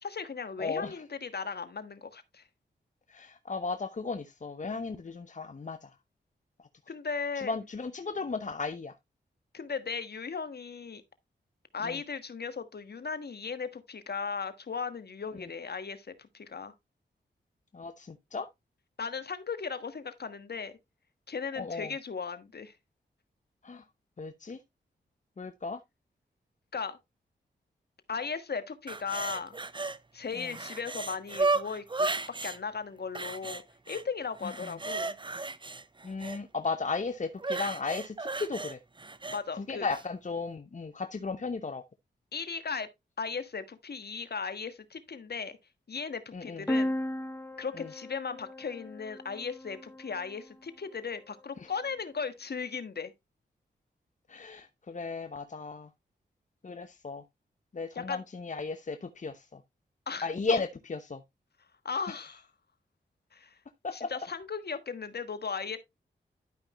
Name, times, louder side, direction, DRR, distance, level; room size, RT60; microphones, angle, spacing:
voice 1, 0.0-2.4 6.9-7.5 9.5-11.0 11.7-16.7 19.0-20.7 21.3-22.7 26.7-27.0 28.1-29.6 30.1-31.8 32.1-33.6 33.9-35.2 39.3-39.9 42.3-42.9 43.2-45.6 45.9-46.9 47.6-53.1 57.9-58.2 60.1-60.6 61.8-62.5 63.3-63.5 63.9-65.8, left 5 dB, 55° left, 1.4 m, -37 dB
voice 2, 0.6-0.9 3.1-5.9 7.4-8.9 11.8-12.0 15.4-15.5 17.7-18.5 21.6-21.9 23.6-23.8 24.2-24.6 25.4-25.8 30.3-30.5 34.6-34.7 36.0-38.8 39.6-41.8 46.3-46.6 47.8-47.9 51.6-51.7 54.3-55.9 56.6-57.2 57.7-59.6 60.2-61.2 62.1-62.2 63.8-64.1, left 4 dB, 40° left, 0.9 m, -35 dB
sound 1, 28.9-30.0 30.3-32.6 33.1-34.0 34.4-36.4 37.4-39.4 39.9-40.0, right 3 dB, 25° right, 0.8 m, -34 dB
sound 2, 46.7-50.4, left 1 dB, 10° left, 1.0 m, -35 dB
11.5 x 5.2 x 3.0 m
cardioid pair, 40°, 19 cm